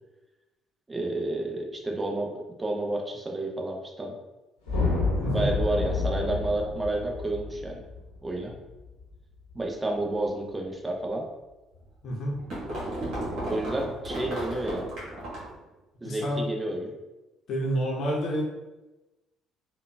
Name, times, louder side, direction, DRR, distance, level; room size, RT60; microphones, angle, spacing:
voice 1, 0.9-4.1 5.3-7.8 8.2-8.5 9.5-11.3 13.5-14.9 16.0-16.9, right 2 dB, 20° right, 0 dB, 0.5 m, -30 dB
sound 1, 4.7-9.1, left 3 dB, 85° left, 0.8 m, -29 dB
voice 2, 5.2-5.5 12.0-12.4 16.0-16.5 17.5-18.4, equal, 55° left, -3 dB, 0.8 m, -29 dB
sound 2, 11.8-15.6, right 1 dB, 55° right, 1.3 m, -34 dB
3.5 x 2.3 x 2.2 m, 1.1 s
figure-of-eight pair, 50°, 0 cm